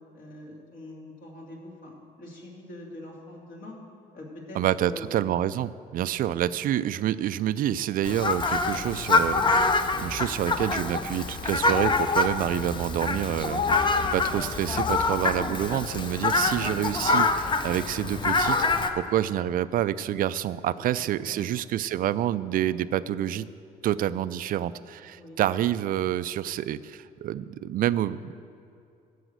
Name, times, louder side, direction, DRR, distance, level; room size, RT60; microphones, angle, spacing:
voice 1, 0.1-3.8 4.1-5.1 13.4-13.7 16.3-16.6 20.8-21.4 25.1-25.4, left 1 dB, 55° left, -2 dB, 2.7 m, -44 dB
voice 2, 4.6-13.6 14.1-23.5 23.8-28.3, right 11 dB, 55° right, 15 dB, 0.4 m, -28 dB
Fowl, 8.0-18.9, left 3 dB, 30° left, 0.7 m, -25 dB
14.0 x 5.0 x 8.0 m, 2.5 s
cardioid pair, 110°, 17 cm